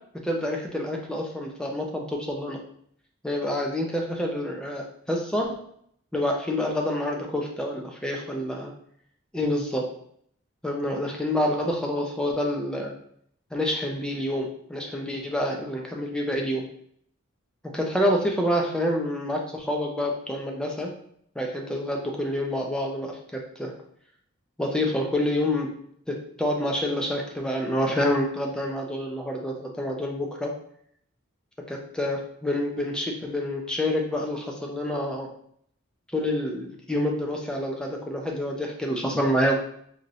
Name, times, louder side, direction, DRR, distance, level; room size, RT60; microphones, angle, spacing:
voice 1, 0.2-2.6 3.2-5.6 6.1-8.7 9.3-9.9 10.6-12.9 13.5-16.7 17.7-20.9 21.4-23.7 24.6-25.7 26.1-30.5 31.7-35.3 36.1-39.6, left 1 dB, 5° left, 0 dB, 0.5 m, -27 dB
3.9 x 2.7 x 3.0 m, 0.66 s
head